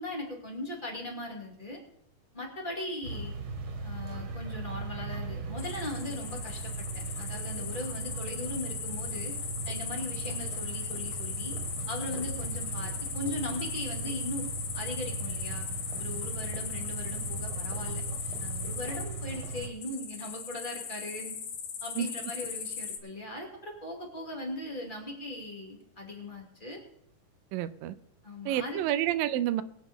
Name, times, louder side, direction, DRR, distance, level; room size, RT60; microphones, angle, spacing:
voice 1, 0.0-1.8 2.3-3.3 3.8-9.3 9.6-11.5 11.9-14.5 14.7-15.7 16.0-18.0 18.4-21.4 21.8-26.8 28.2-28.8, left 1 dB, 15° left, 0 dB, 2.2 m, -39 dB
sound 1, 3.0-19.7, right 4 dB, 55° right, 2.4 m, -38 dB
sound 2, 5.6-23.0, left 7 dB, 65° left, 2.3 m, -38 dB
voice 2, 27.5-27.9 28.5-29.6, right 12 dB, 85° right, 13 dB, 2.3 m, -29 dB
22.0 x 8.5 x 3.6 m, 0.76 s
omnidirectional pair, 4.0 m